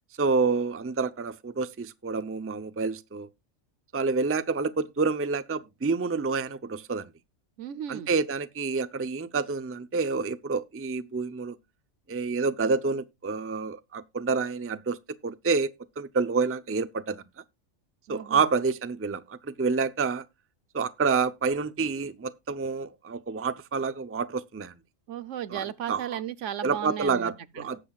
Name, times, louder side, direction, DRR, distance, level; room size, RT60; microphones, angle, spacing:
voice 1, 0.2-3.3 3.9-7.1 7.9-11.6 12.1-15.0 15.2-15.7 16.0-17.2 18.1-20.2 20.7-24.7 25.5-26.2 26.6-27.8, right 4 dB, 15° right, 0.4 m, -28 dB
voice 2, 7.6-8.1 18.1-18.5 25.1-27.7, right 10 dB, 75° right, 1.1 m, -35 dB
18.5 x 7.7 x 2.4 m
omnidirectional pair, 1.3 m